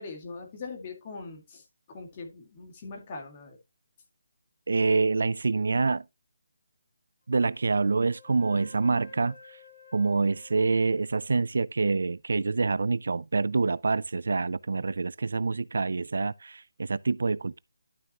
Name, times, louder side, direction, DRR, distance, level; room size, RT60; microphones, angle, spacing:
voice 1, 0.0-3.6, left 4 dB, 25° left, 1.9 m, -41 dB
voice 2, 4.7-6.0 7.3-9.6 9.9-17.6, right 4 dB, 70° right, 0.4 m, -26 dB
Wind instrument woodwind instrument, 7.3-11.5, left 4 dB, 60° left, 3.1 m, -53 dB
11.5 x 5.9 x 2.9 m
hypercardioid pair, 175°, 0 cm